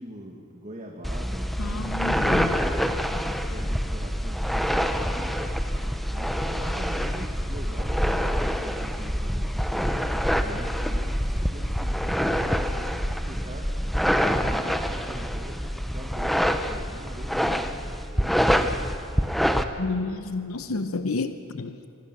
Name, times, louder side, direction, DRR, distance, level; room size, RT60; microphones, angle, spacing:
voice 1, 0.0-1.9 2.3-5.9 6.1-10.0 10.4-13.7 14.2-18.8, right 1 dB, 35° right, 0 dB, 2.0 m, -43 dB
sound 1, 1.0-19.6, equal, ahead, 0.9 m, -26 dB
voice 2, 1.6-2.6 19.8-21.9, left 3 dB, 90° left, 10 dB, 0.9 m, -30 dB
25.0 x 24.5 x 6.1 m, 2.6 s
head